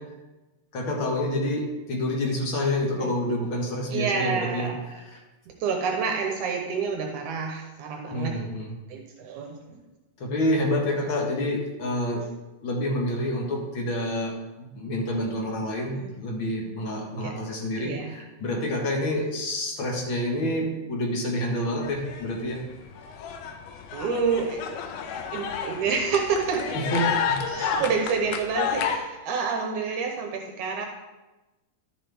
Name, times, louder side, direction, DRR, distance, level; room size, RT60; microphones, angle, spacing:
voice 1, 0.7-4.7 5.1-5.2 8.1-8.7 10.2-12.2 12.6-22.6 26.7-27.4 27.7-27.8, left 1 dB, 50° left, 0 dB, 1.8 m, -28 dB
voice 2, 3.9-5.0 5.6-8.4 8.9-9.8 11.0-11.1 15.9-16.1 17.2-17.3 17.8-18.2 19.2-19.3 23.9-24.6 25.3-26.9 27.5-30.9, right 5 dB, 75° right, 2 dB, 2.3 m, -28 dB
sound 1, 21.8-22.6 22.8-29.0, left 7 dB, 85° left, 2.3 m, -30 dB
12.0 x 7.4 x 3.5 m, 1.1 s
omnidirectional pair, 3.7 m